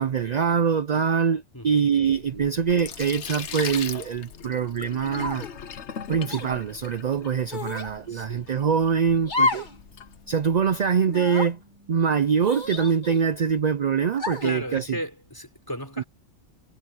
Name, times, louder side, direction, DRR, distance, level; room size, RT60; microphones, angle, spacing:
voice 1, 0.0-5.5 6.1-9.7 10.3-11.6 11.9-14.9 16.0-16.1, right 7 dB, 55° right, 0.5 m, -24 dB
Sink (filling or washing), 2.0-10.8, left 8 dB, 65° left, 1.2 m, -40 dB
sound 1, 5.2-5.6 6.3-6.5 7.5-7.9 9.3-9.8 10.1-10.2 11.1-11.5 12.4-13.3 14.2-14.6, left 3 dB, 35° left, 2.1 m, -29 dB
sound 2, 7.7-13.2, left 1 dB, 80° left, 8.4 m, -57 dB
voice 2, 8.1-8.5 14.4-16.0, equal, 15° left, 4.3 m, -34 dB
omnidirectional pair, 1.3 m